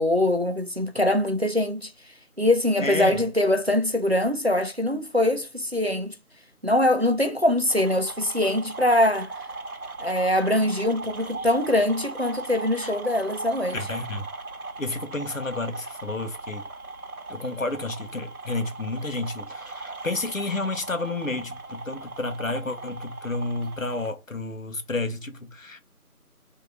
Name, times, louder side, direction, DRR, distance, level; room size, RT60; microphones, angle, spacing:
voice 1, 0.0-1.9 2.4-6.2 6.6-9.3 10.0-13.8, left 1 dB, 45° right, 0.5 m, -23 dB
voice 2, 2.8-3.2 12.7-12.9 13.7-14.3 14.8-16.7 17.3-25.8, left 2 dB, 60° left, 0.9 m, -31 dB
sound 1, 7.7-24.1, right 3 dB, 70° right, 1.0 m, -38 dB
3.6 x 2.8 x 4.1 m
figure-of-eight pair, 175°, 45 cm